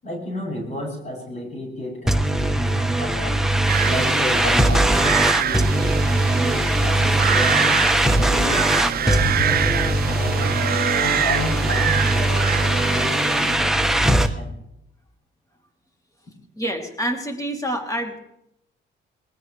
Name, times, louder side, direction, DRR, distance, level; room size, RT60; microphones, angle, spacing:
voice 1, 0.0-3.4 3.8-10.6 11.0-14.5, left 1 dB, 35° left, -1 dB, 7.5 m, -32 dB
sound 1, 2.1-14.3, right 1 dB, ahead, 1.0 m, -20 dB
sound 2, 3.7-13.6, right 10 dB, 50° right, 0.5 m, -26 dB
sound 3, 9.1-13.5, left 3 dB, 60° left, 3.2 m, -32 dB
voice 2, 16.6-18.2, equal, 15° left, 2 dB, 3.2 m, -27 dB
21.0 x 19.5 x 3.4 m, 0.81 s
cardioid pair, 90°, 20 cm